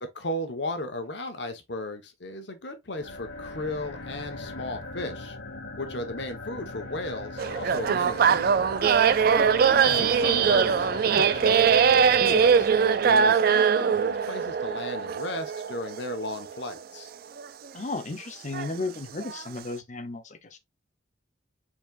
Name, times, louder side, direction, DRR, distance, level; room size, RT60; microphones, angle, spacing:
voice 1, 0.1-5.4 5.8-9.0 9.5-12.7 13.0-17.1, left 1 dB, 65° left, 1.2 m, -35 dB
sound 1, 2.9-13.4, left 2 dB, 90° left, 1.4 m, -40 dB
sound 2, 7.4-16.7 17.4-17.5 18.5-18.8 19.2-19.4, right 6 dB, 50° right, 0.3 m, -22 dB
voice 2, 9.6-10.1 17.7-20.6, left 3 dB, 40° left, 0.7 m, -34 dB
4.7 x 4.3 x 2.5 m
head